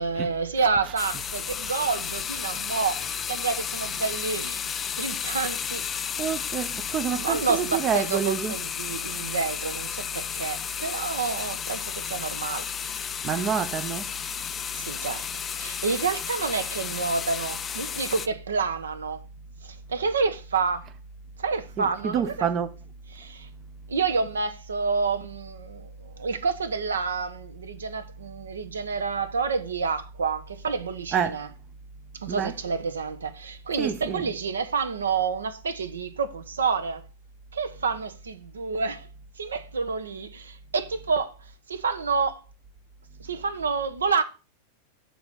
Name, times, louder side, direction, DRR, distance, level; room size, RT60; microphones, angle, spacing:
voice 1, 0.0-5.8 7.2-12.7 14.7-15.3 15.6-19.2 19.6-20.9 21.4-22.5 23.1-23.5 23.9-31.5 32.2-37.0 37.5-39.1 39.4-41.4 41.7-42.4 43.2-44.2, right 5 dB, 70° right, 0.8 m, -29 dB
sound 1, 1.0-18.3, left 7 dB, 25° left, 0.4 m, -33 dB
voice 2, 6.2-8.5 13.2-14.1 21.8-22.7 31.1-31.4 32.3-32.5 33.8-34.3, right 8 dB, 30° right, 0.5 m, -27 dB
8.1 x 3.9 x 6.4 m
figure-of-eight pair, 90°, 0 cm